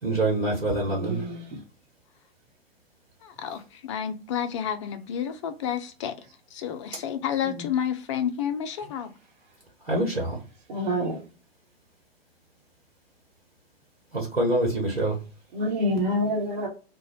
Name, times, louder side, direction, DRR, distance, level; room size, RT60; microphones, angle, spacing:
voice 1, 0.0-1.2 9.8-10.4 14.1-15.2, right 1 dB, 75° right, 1.0 m, -25 dB
voice 2, 0.9-1.6 7.4-7.6 10.7-11.2 15.5-16.7, equal, 50° right, 0.9 m, -27 dB
voice 3, 3.2-6.1 6.5-9.1, left 9 dB, 30° left, 0.4 m, -30 dB
2.5 x 2.1 x 2.9 m
figure-of-eight pair, 105°, 30 cm